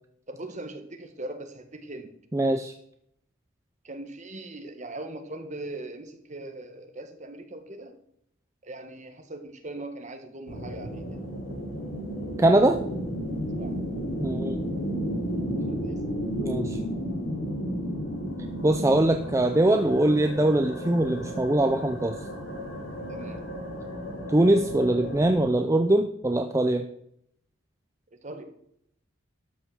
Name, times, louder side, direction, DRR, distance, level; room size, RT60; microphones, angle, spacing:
voice 1, 0.3-2.1 3.8-7.9 8.6-11.0 13.6-13.8 15.6-16.0 23.1-23.4 28.2-28.5, right 2 dB, 35° right, 6 dB, 1.4 m, -40 dB
voice 2, 2.3-2.7 12.4-12.8 14.2-14.7 16.4-16.8 18.6-22.2 24.3-26.9, right 1 dB, 15° right, 6 dB, 0.5 m, -22 dB
sound 1, 10.5-25.5, equal, 70° left, 3.3 m, -33 dB
12.5 x 5.9 x 6.2 m, 0.72 s
head